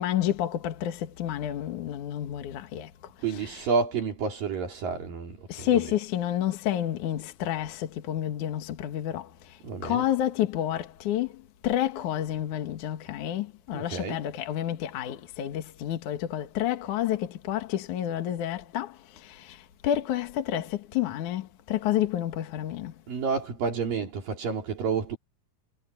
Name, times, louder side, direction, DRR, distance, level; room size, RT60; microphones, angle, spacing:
voice 1, 0.0-2.9 3.3-3.6 5.5-9.6 9.8-22.9, left 11 dB, 65° left, 2.8 m, -30 dB
voice 2, 3.2-6.0 9.6-10.1 13.7-14.3 23.1-25.2, right 5 dB, 75° right, 5.2 m, -30 dB
omnidirectional pair, 4.0 m